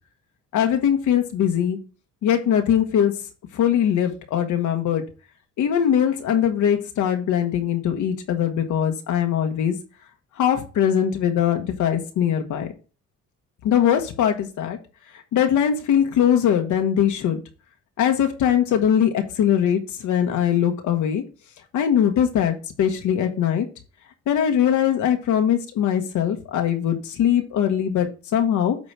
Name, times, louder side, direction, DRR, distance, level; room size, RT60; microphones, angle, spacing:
voice 1, 0.5-1.8 2.2-3.1 3.5-5.0 5.6-9.7 10.4-12.7 13.6-14.8 15.3-17.4 18.0-21.2 21.7-23.7 24.3-28.8, left 9 dB, 80° left, 5 dB, 1.2 m, -21 dB
8.6 x 3.1 x 5.8 m, 0.34 s
cardioid pair, 90°, 30 cm